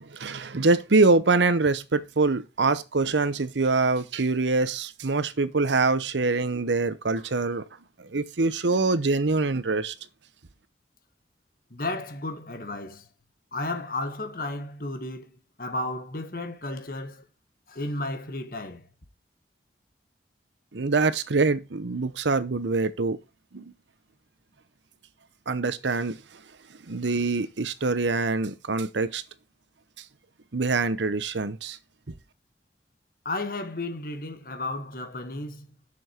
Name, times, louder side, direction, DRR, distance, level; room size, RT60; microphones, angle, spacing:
voice 1, 0.0-7.6 8.0-9.9 20.7-23.2 23.5-23.7 25.5-26.2 26.9-29.2 30.5-31.8, right 3 dB, 90° right, 0.9 m, -24 dB
voice 2, 11.7-13.1 13.5-17.2 17.7-18.9 33.2-35.7, left 2 dB, 50° left, 1.4 m, -33 dB
7.0 x 6.6 x 4.5 m
head